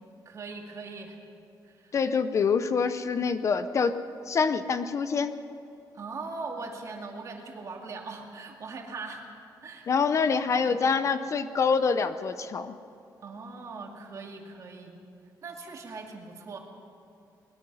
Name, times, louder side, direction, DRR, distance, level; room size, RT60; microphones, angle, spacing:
voice 1, 0.3-1.2 1.6-1.9 5.9-9.3 9.6-9.9 10.6-10.8 13.2-15.0 15.4-16.6, right 4 dB, 45° right, 1 dB, 2.5 m, -40 dB
voice 2, 1.9-4.0 4.3-5.3 9.9-12.8, left 5 dB, 40° left, 12 dB, 0.6 m, -26 dB
23.5 x 20.5 x 5.6 m, 2.6 s
wide cardioid pair, 165°, 8 cm